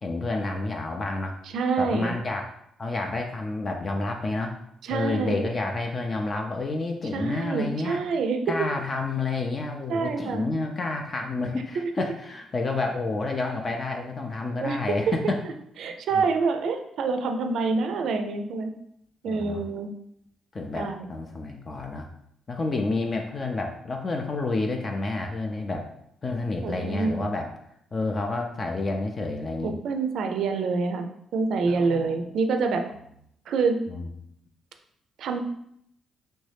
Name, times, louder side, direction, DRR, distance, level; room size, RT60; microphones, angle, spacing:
voice 1, 0.0-1.4 1.8-2.5 2.8-4.6 4.9-8.0 8.5-15.4 16.1-16.2 19.2-19.6 20.5-22.1 22.5-25.9 26.2-27.5 27.9-29.7 31.7-32.2 33.9-34.1, left 3 dB, 35° left, 2 dB, 0.4 m, -29 dB
voice 2, 1.5-2.1 4.8-5.5 7.1-8.7 9.9-10.5 11.8-11.9 14.6-15.2 15.8-18.7 19.2-19.9 20.7-21.1 26.6-27.2 29.6-31.1 31.3-32.8 33.5-33.8 35.2-35.4, right 4 dB, 70° right, 6 dB, 0.4 m, -26 dB
3.2 x 2.6 x 3.3 m, 0.73 s
cardioid pair, 90°, 0 cm